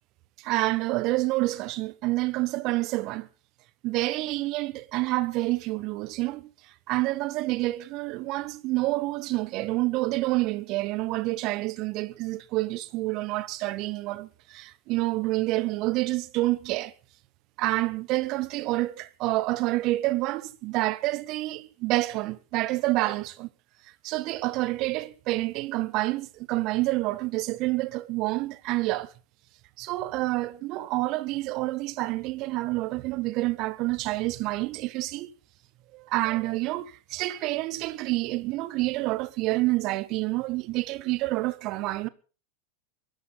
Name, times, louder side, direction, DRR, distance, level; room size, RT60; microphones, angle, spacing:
voice 1, 0.4-3.3 3.8-6.5 6.9-16.9 17.6-23.5 24.0-29.1 29.8-35.3 35.9-42.1, right 19 dB, 40° right, 1.1 m, -28 dB
23.0 x 13.0 x 4.0 m
figure-of-eight pair, 90°, 0 cm